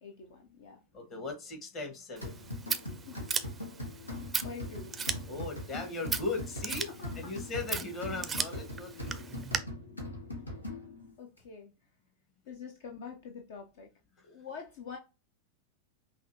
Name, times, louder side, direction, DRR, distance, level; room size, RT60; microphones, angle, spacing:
voice 1, 0.0-0.8 3.1-3.2 4.4-4.9 7.0-7.3 11.2-11.7 12.5-13.9 14.2-15.0, left 5 dB, 55° left, 0.7 m, -45 dB
voice 2, 0.9-2.4 5.3-6.9 7.1-9.4, left 3 dB, 30° left, 1.5 m, -38 dB
sound 1, 2.2-11.1, left 1 dB, 80° left, 1.2 m, -41 dB
Scissors, 2.2-9.6, right 5 dB, 15° right, 0.5 m, -38 dB
5.8 x 2.5 x 2.7 m
figure-of-eight pair, 90°, 0 cm